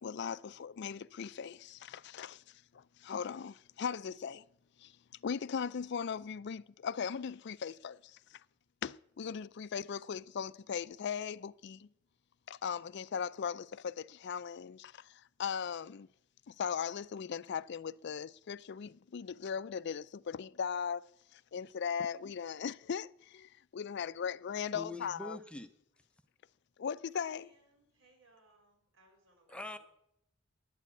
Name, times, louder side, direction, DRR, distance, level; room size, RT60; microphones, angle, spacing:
voice 1, 0.0-4.4 4.8-4.9 5.2-8.2 8.8-11.9 12.5-16.1 16.5-25.4 26.8-27.5, left 7 dB, 60° left, 0.4 m, -39 dB
voice 2, 24.7-25.7 29.5-29.8, left 2 dB, 5° left, 0.7 m, -43 dB
voice 3, 27.1-29.8, right 2 dB, 85° right, 5.9 m, -65 dB
11.0 x 9.5 x 8.3 m
head